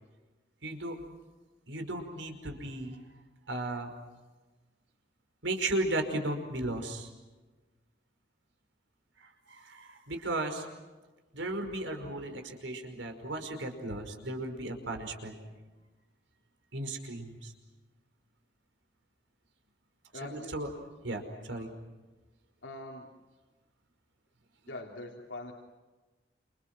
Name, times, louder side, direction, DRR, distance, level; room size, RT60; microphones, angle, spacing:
voice 1, 0.6-1.0 1.7-3.0 3.5-3.9 5.4-7.1 9.2-10.7 11.3-15.4 16.7-17.5 20.2-20.7 21.0-21.7, right 2 dB, 90° right, 5 dB, 5.4 m, -35 dB
voice 2, 20.1-20.7 21.5-21.7 22.6-23.1 24.7-25.5, left 2 dB, 85° left, 0 dB, 3.5 m, -43 dB
29.5 x 29.0 x 6.2 m, 1.2 s
head